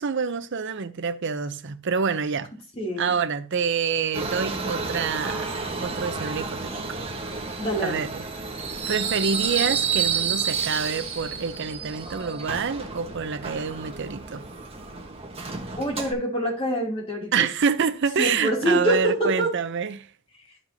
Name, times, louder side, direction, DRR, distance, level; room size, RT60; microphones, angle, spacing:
voice 1, 0.0-2.5 3.0-5.5 5.8-6.9 7.8-8.2 8.9-14.4 17.3-20.1, right 6 dB, 60° right, 0.6 m, -27 dB
voice 2, 2.8-3.1 7.6-8.0 15.8-17.4 18.2-19.5, right 1 dB, 30° left, 2.7 m, -25 dB
Subway metro underground, 4.1-16.1, right 5 dB, 30° right, 1.2 m, -30 dB
12.0 x 5.3 x 2.7 m
head